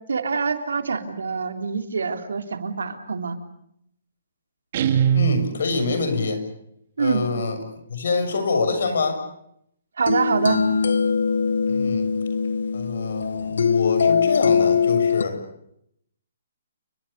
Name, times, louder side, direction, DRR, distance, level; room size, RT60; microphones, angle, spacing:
voice 1, 0.1-3.4 7.0-7.2 10.0-10.6, right 5 dB, 85° right, 6 dB, 3.4 m, -25 dB
Guitar, 4.7-6.0, right 8 dB, 40° right, 2.9 m, -22 dB
voice 2, 5.1-6.4 7.0-7.6 7.9-9.2 11.7-12.1 12.7-15.4, left 4 dB, 70° left, 8 dB, 6.8 m, -25 dB
sound 1, 10.1-15.2, left 6 dB, 85° left, 1.2 m, -21 dB
29.5 x 24.0 x 6.8 m, 0.74 s
hypercardioid pair, 160°, 0 cm